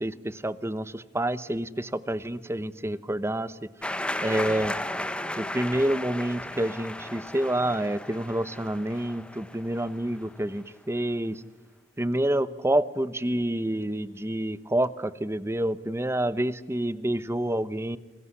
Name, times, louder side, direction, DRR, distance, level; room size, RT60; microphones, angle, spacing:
voice 1, 0.0-3.6 3.8-3.9 4.2-4.7 5.4-11.4 12.0-18.0, right 1 dB, 15° right, 16 dB, 0.9 m, -28 dB
sound 1, 3.8-10.4, left 1 dB, 5° left, 1.1 m, -35 dB
28.5 x 21.0 x 9.8 m, 1.1 s
head